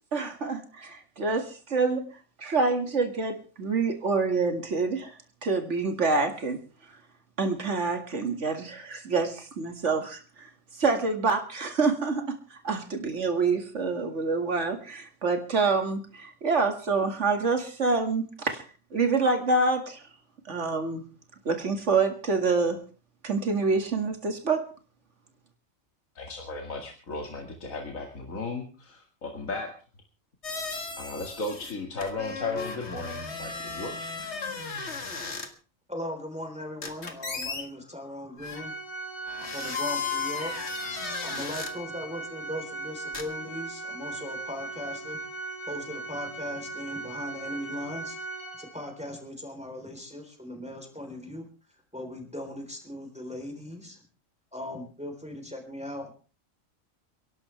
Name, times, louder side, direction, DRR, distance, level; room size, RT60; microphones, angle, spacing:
voice 1, 0.1-2.1 2.4-6.6 7.4-10.5 10.7-18.6 18.9-20.0 20.5-21.0 21.5-22.8 23.2-24.6, right 4 dB, 60° right, 5 dB, 2.4 m, -27 dB
voice 2, 26.1-29.7 30.5-30.6 31.0-34.1, left 3 dB, 75° left, 1 dB, 2.5 m, -35 dB
sound 1, 30.4-31.7 32.0-35.5 36.8-37.6 38.4-38.6 39.3-41.7 43.1-43.2, left 4 dB, 55° left, 2.0 m, -35 dB
voice 3, 35.9-38.7 39.5-40.5 41.2-45.2 45.7-48.2 48.6-51.5 51.9-54.0 54.5-56.1, left 1 dB, 5° right, 3 dB, 3.7 m, -38 dB
Organ, 38.5-49.1, right 3 dB, 30° left, 3.5 m, -38 dB
29.0 x 11.5 x 3.4 m, 0.36 s
omnidirectional pair, 1.4 m